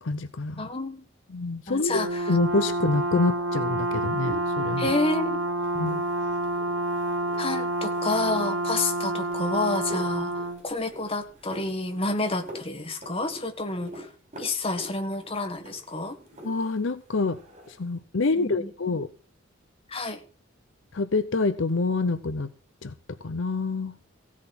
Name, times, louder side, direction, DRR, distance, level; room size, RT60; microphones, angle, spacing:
voice 1, 0.0-0.6 1.3-2.0 2.3-4.9 5.7-6.0 16.4-17.4 17.7-19.1 20.9-22.5 22.8-22.9 23.2-23.9, left 3 dB, 65° left, 12 dB, 0.7 m, -26 dB
voice 2, 0.6-1.0 1.7-2.3 4.8-5.5 7.4-10.3 10.6-14.1 14.4-16.2 18.3-18.7 19.9-20.2, left 2 dB, 30° left, 7 dB, 1.5 m, -29 dB
Brass instrument, 1.9-10.6, right 1 dB, 90° right, 1.3 m, -28 dB
sound 1, 3.8-16.9 17.1-17.8, equal, 35° right, 6.8 m, -45 dB
16.0 x 7.4 x 5.9 m, 0.39 s
head